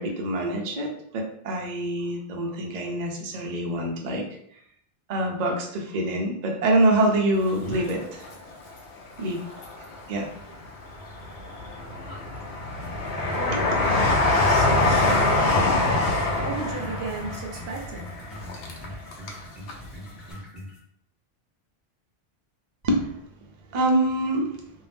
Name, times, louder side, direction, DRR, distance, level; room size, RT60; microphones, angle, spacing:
voice 1, 0.0-4.2 5.1-8.2 9.2-9.4 10.1-10.3 22.8-23.1 23.7-24.5, right 1 dB, 50° right, 1 dB, 0.5 m, -25 dB
Train, 7.5-8.7 9.2-10.1 10.7-19.4 19.7-19.8, left 2 dB, 70° left, 0.8 m, -24 dB
voice 2, 12.4-13.8 14.4-18.3, right 4 dB, 75° right, 0 dB, 0.9 m, -36 dB
sound 1, 12.8-20.8, left 1 dB, ahead, 0.7 m, -42 dB
2.6 x 2.0 x 3.3 m, 0.69 s
omnidirectional pair, 1.1 m